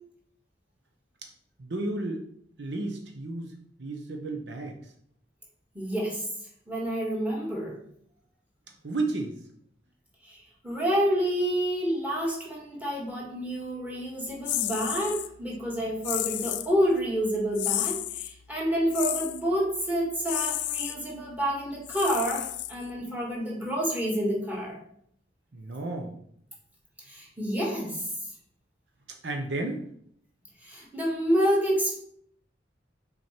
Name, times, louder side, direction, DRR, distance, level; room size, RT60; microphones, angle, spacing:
voice 1, 1.6-2.2 2.6-3.5 3.8-4.7 8.8-9.4 25.5-26.1 29.2-29.8, right 2 dB, 70° right, 3 dB, 0.9 m, -32 dB
voice 2, 5.7-6.2 6.7-7.8 10.2-24.8 27.1-28.1 30.6-32.0, equal, 10° right, -3 dB, 2.0 m, -28 dB
sound 1, 14.5-15.3 16.0-16.7 17.5-18.3 18.9-19.4 20.2-21.0 21.8-23.0, left 14 dB, 75° left, 0.4 m, -31 dB
6.3 x 4.4 x 4.4 m, 0.66 s
head